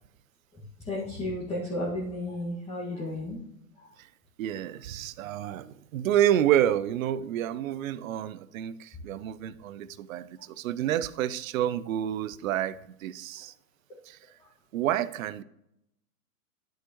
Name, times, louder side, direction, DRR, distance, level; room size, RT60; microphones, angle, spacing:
voice 1, 0.8-3.4 3.8-3.9 5.3-5.4, left 1 dB, 15° left, -7 dB, 2.0 m, -33 dB
voice 2, 4.4-12.7 13.0-13.5 14.1-14.2 14.7-15.4, right 11 dB, 60° right, 15 dB, 0.7 m, -29 dB
11.0 x 6.4 x 3.1 m, 0.78 s
hypercardioid pair, 130°, 46 cm